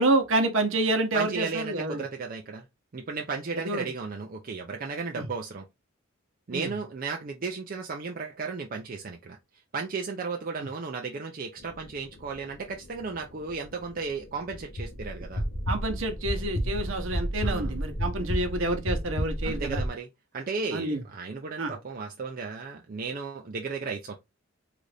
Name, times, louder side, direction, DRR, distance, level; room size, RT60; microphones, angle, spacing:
voice 1, 0.0-2.0 3.6-3.9 5.2-5.3 6.5-6.7 15.7-19.8 20.7-21.0 21.6-21.7, right 2 dB, 65° right, 0.9 m, -28 dB
voice 2, 1.1-2.6 2.9-5.7 6.5-9.4 9.7-15.4 17.4-17.8 19.4-20.1 20.3-24.2, right 4 dB, 40° right, 0.4 m, -34 dB
sound 1, 11.6-19.9, equal, 90° left, 1.1 m, -33 dB
3.9 x 2.5 x 3.2 m
head